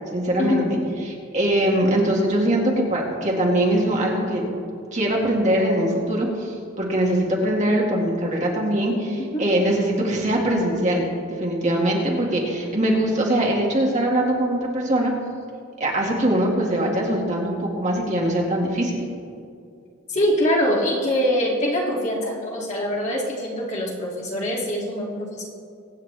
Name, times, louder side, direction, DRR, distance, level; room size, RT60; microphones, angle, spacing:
voice 1, 0.1-0.6 1.0-4.4 4.9-11.1 11.4-15.1 15.8-19.0, right 1 dB, 35° right, -1 dB, 2.1 m, -22 dB
voice 2, 20.1-25.5, equal, 35° left, -4 dB, 2.5 m, -23 dB
23.0 x 9.3 x 3.4 m, 2.5 s
head